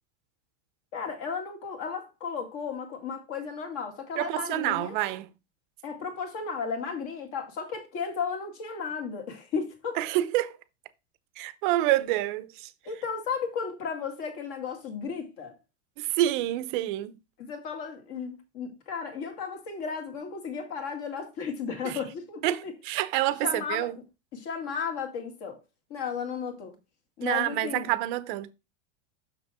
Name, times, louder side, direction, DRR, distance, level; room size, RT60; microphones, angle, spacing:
voice 1, 0.9-5.0 5.8-10.0 12.8-15.6 17.4-22.7 23.4-23.9 24.3-25.6 25.9-26.7 27.2-27.9, left 6 dB, 40° left, 2.3 m, -34 dB
voice 2, 4.2-5.3 10.0-10.6 11.4-12.7 16.0-17.2 21.8-21.9 22.4-24.0 27.2-28.5, right 15 dB, 45° right, 0.7 m, -27 dB
6.6 x 6.4 x 3.5 m
supercardioid pair, 165°, 35 cm